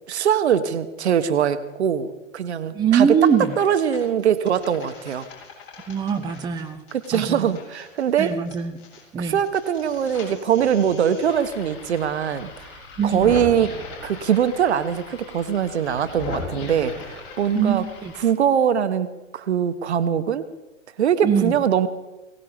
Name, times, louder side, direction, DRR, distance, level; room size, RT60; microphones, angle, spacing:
voice 1, 0.1-5.3 6.9-8.4 9.2-12.7 13.0-13.8 14.0-17.8 18.1-19.1 19.3-20.4 21.0-21.9, right 8 dB, 55° right, 11 dB, 1.5 m, -22 dB
voice 2, 2.7-3.5 5.9-6.8 7.1-7.5 8.2-8.8 9.1-9.4 13.0-13.3 17.5-18.1 21.2-21.5, right 7 dB, 10° right, 6 dB, 0.9 m, -22 dB
sound 1, 3.2-3.6 3.9-9.0 9.3-18.2, left 4 dB, 30° left, 7.1 m, -39 dB
22.0 x 18.0 x 3.6 m, 1.1 s
figure-of-eight pair, 115°, 39 cm